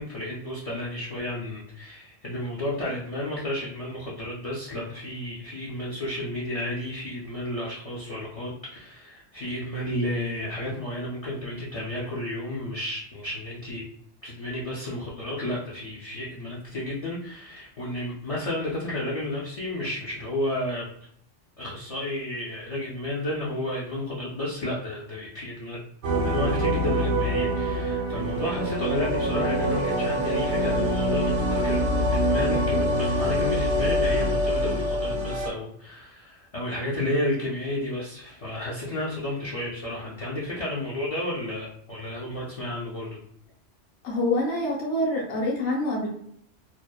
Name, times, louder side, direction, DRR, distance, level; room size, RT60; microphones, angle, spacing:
voice 1, 0.0-13.8 14.2-20.9 21.6-25.8 26.2-43.2, left 1 dB, 55° left, -5 dB, 0.4 m, -32 dB
sound 1, 26.0-35.5, equal, 75° right, 0.8 m, -25 dB
voice 2, 44.0-46.1, left 1 dB, 70° left, -3 dB, 1.0 m, -26 dB
2.7 x 2.0 x 2.2 m, 0.68 s
omnidirectional pair, 1.2 m